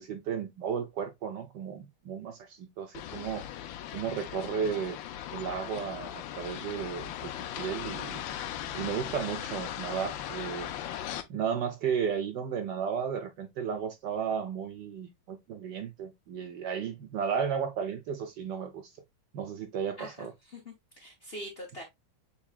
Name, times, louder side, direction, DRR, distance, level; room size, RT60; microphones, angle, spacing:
voice 1, 0.0-3.5 3.9-5.0 5.3-8.2 8.7-10.7 11.3-18.9 19.3-20.3, right 7 dB, 70° right, 1.1 m, -34 dB
sound 1, 2.9-11.2, left 11 dB, 75° left, 1.2 m, -38 dB
voice 2, 20.0-21.8, equal, 40° left, 0.9 m, -44 dB
7.0 x 3.1 x 2.3 m
omnidirectional pair, 2.3 m